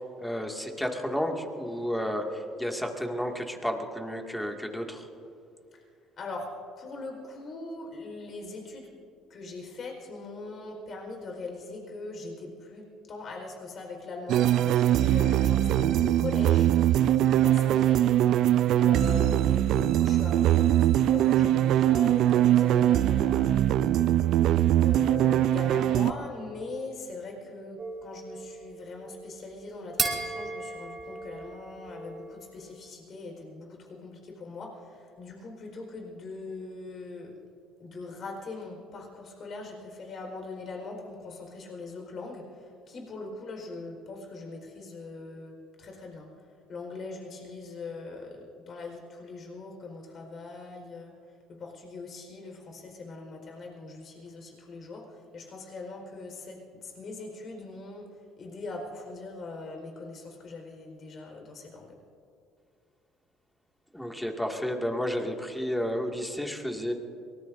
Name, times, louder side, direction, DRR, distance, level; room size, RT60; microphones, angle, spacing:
voice 1, 0.2-5.1 63.9-66.9, equal, 5° left, 2 dB, 2.2 m, -31 dB
voice 2, 6.2-6.5 6.8-8.9 9.3-16.7 17.2-18.1 18.7-23.6 24.8-37.3 37.8-46.3 46.7-51.1 51.5-58.1 58.4-61.9, left 3 dB, 50° left, 2 dB, 4.6 m, -41 dB
sound 1, 14.3-26.1, right 12 dB, 65° right, 0.5 m, -22 dB
sound 2, 27.8-32.6, right 4 dB, 35° right, 2.6 m, -36 dB
24.0 x 19.5 x 2.7 m, 2.6 s
supercardioid pair, 75°, 0 cm